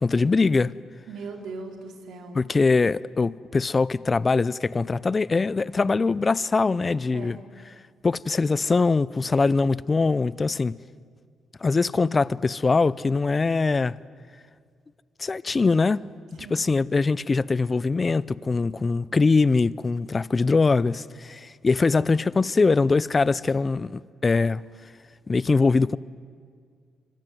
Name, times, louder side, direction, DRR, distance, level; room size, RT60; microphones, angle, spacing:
voice 1, 0.0-0.7 2.3-7.4 8.0-10.8 11.6-14.0 15.2-16.0 16.3-24.6 25.3-26.0, left 4 dB, 30° left, 0.7 m, -22 dB
voice 2, 1.1-2.4 7.1-7.4 16.4-16.6, right 4 dB, 75° right, 4.1 m, -39 dB
25.5 x 24.5 x 9.3 m
cardioid pair, 90°, 0 cm